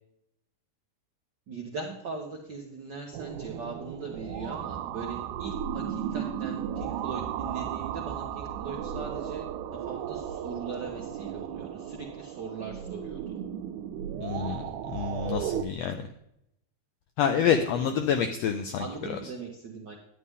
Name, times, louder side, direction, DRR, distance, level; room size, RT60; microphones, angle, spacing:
voice 1, 1.5-9.4 9.7-13.4 17.5-18.1 18.8-19.9, right 4 dB, 75° right, 0 dB, 1.0 m, -40 dB
sound 1, 3.1-15.6, right 9 dB, 90° right, 2.1 m, -35 dB
voice 2, 14.2-16.0 17.2-19.3, left 8 dB, 90° left, 7 dB, 1.4 m, -28 dB
11.0 x 9.7 x 3.6 m, 0.79 s
omnidirectional pair, 3.5 m